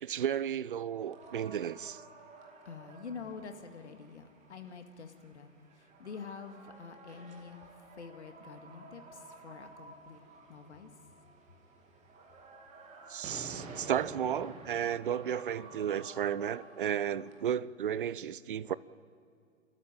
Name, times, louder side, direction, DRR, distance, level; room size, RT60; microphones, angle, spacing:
voice 1, 0.0-2.0 13.1-18.7, right 9 dB, 45° right, 0.5 m, -33 dB
sound 1, 0.9-17.5, right 3 dB, 15° right, 2.2 m, -51 dB
voice 2, 2.6-10.2 10.5-10.9, left 5 dB, 60° left, 2.1 m, -47 dB
29.5 x 13.0 x 8.9 m
figure-of-eight pair, 125°, 39 cm